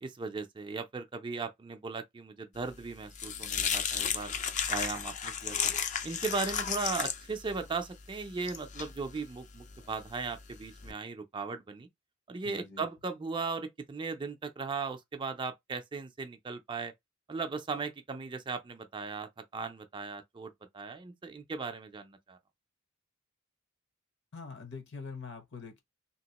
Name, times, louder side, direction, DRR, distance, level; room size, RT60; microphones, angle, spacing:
voice 1, 0.0-4.3 4.7-5.7 6.0-11.9 12.3-16.9 17.3-22.4, right 4 dB, 25° right, 0.4 m, -37 dB
sound 1, 2.6-10.9, left 7 dB, 35° left, 0.4 m, -35 dB
voice 2, 12.4-12.8 24.3-25.8, left 4 dB, 60° left, 0.9 m, -44 dB
2.9 x 2.8 x 2.8 m
head